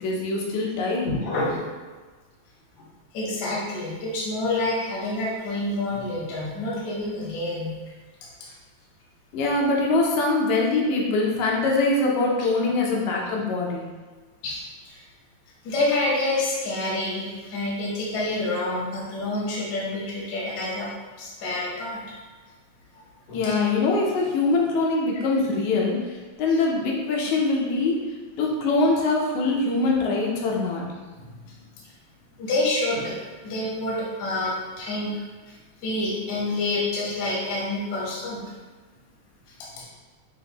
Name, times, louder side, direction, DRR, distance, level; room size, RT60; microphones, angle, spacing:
voice 1, 0.0-1.1 9.3-13.9 23.3-28.0 28.4-30.9, left 3 dB, 80° left, -2 dB, 2.0 m, -23 dB
voice 2, 1.0-1.6 2.8-2.9 3.1-7.7 8.4-8.5 14.4-15.0 15.6-20.9 21.2-22.0 23.3-23.5 31.2-31.5 32.4-33.2 33.4-35.5 35.8-38.4, left 2 dB, 55° left, -5 dB, 1.2 m, -28 dB
7.0 x 2.5 x 2.9 m, 1.3 s
omnidirectional pair, 3.4 m